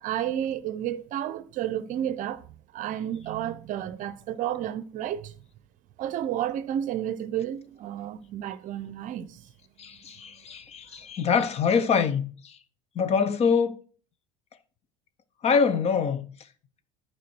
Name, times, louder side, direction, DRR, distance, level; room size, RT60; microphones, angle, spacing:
voice 1, 0.0-2.4 2.7-5.3 6.0-9.4, right 11 dB, 50° right, 0.6 m, -31 dB
voice 2, 9.8-12.6 13.0-13.8 15.4-16.3, left 6 dB, 35° left, 0.8 m, -25 dB
10.5 x 4.5 x 4.5 m
hypercardioid pair, 80°, 17 cm